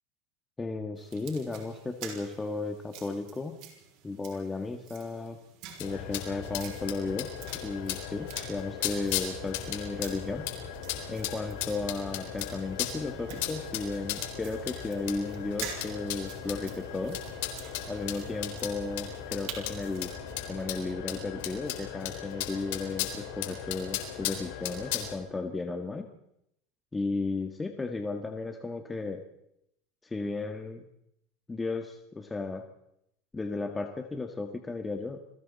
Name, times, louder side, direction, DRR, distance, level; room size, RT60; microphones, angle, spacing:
voice 1, 0.6-3.5 4.0-5.4 5.8-7.3 7.6-10.5 11.1-17.2 17.9-20.1 20.5-26.1 26.9-29.2 30.0-30.8 31.5-32.7 33.3-35.2, left 3 dB, 15° left, 5 dB, 1.8 m, -34 dB
sound 1, 0.9-20.1, right 8 dB, 60° right, 6.0 m, -49 dB
sound 2, 5.8-25.2, left 10 dB, 75° left, 4.0 m, -37 dB
sound 3, 8.8-21.6, right 4 dB, 20° right, 2.5 m, -51 dB
29.5 x 21.5 x 4.2 m, 0.79 s
supercardioid pair, 125°, 0 cm